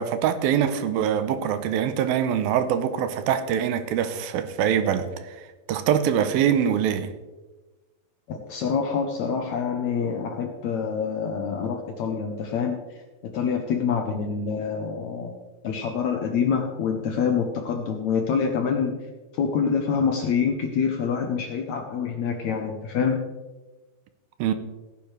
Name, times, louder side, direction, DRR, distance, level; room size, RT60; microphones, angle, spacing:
voice 1, 0.0-5.4 5.7-7.1 24.4-24.5, right 9 dB, 90° right, 2.6 m, -24 dB
voice 2, 8.3-12.8 13.3-15.3 15.6-18.9 19.3-23.2, left 6 dB, 70° left, 1.8 m, -26 dB
17.0 x 9.5 x 3.3 m
omnidirectional pair, 4.3 m